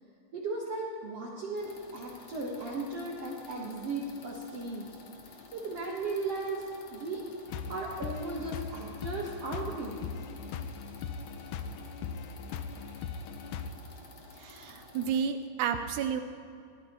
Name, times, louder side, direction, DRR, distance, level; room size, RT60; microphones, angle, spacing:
voice 1, 0.3-4.9 5.5-6.6 6.9-7.2 7.7-10.0, right 3 dB, 55° right, -3 dB, 2.0 m, -36 dB
sound 1, 1.6-15.2, left 3 dB, 55° left, 2.5 m, -52 dB
sound 2, 7.5-13.7, left 6 dB, 80° left, 1.8 m, -39 dB
voice 2, 14.4-16.2, right 7 dB, 80° right, 8 dB, 1.8 m, -31 dB
22.0 x 16.5 x 3.0 m, 2.5 s
omnidirectional pair, 4.1 m